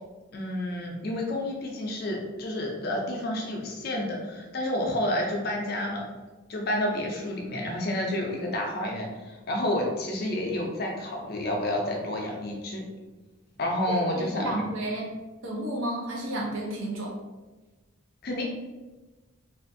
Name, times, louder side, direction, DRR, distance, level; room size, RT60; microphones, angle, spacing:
voice 1, 0.3-6.0 6.5-12.8 13.6-14.7 18.2-18.4, left 1 dB, 50° left, 0 dB, 0.4 m, -30 dB
voice 2, 13.9-15.1 15.4-17.2, right 1 dB, 75° right, -2 dB, 0.7 m, -32 dB
2.5 x 2.4 x 2.5 m, 1.2 s
head